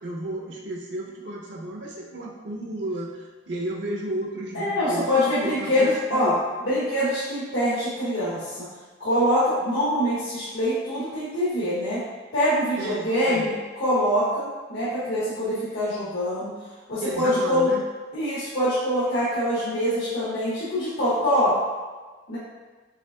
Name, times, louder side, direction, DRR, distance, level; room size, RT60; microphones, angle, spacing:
voice 1, 0.0-5.1 5.4-6.4 12.8-13.5 17.0-17.8, right 1 dB, 65° right, -1 dB, 0.5 m, -33 dB
voice 2, 4.5-6.3 6.6-8.7 9.0-12.0 12.3-16.5 16.9-17.7 18.1-21.6 22.3-22.4, equal, 80° left, -10 dB, 1.3 m, -24 dB
6.2 x 3.5 x 2.2 m, 1.4 s
head